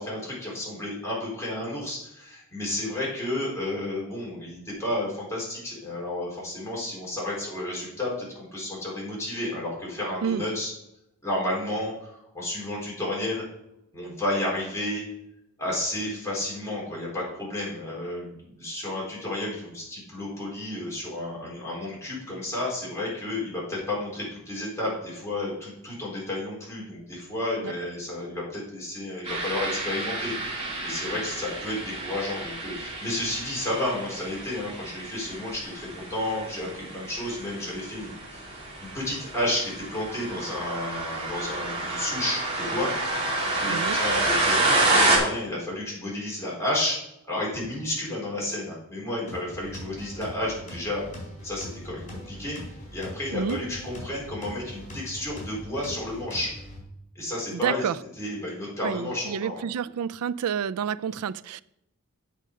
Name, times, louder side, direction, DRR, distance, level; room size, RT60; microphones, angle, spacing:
voice 1, 0.0-10.7 11.2-13.4 13.9-15.0 15.6-30.3 30.6-38.5 38.8-42.9 43.2-43.3 43.6-47.0 47.3-51.0 51.4-52.6 52.9-56.5 57.1-57.9 58.2-59.6, left 1 dB, 15° left, 4.0 m, -31 dB
sound 1, 29.2-45.2, right 2 dB, 25° right, 2.7 m, -29 dB
voice 2, 43.6-44.0 53.3-53.6 57.5-57.9 58.8-61.6, right 7 dB, 80° right, 0.4 m, -29 dB
sound 2, 49.3-56.8, equal, 35° left, 4.0 m, -41 dB
8.3 x 6.4 x 5.3 m
head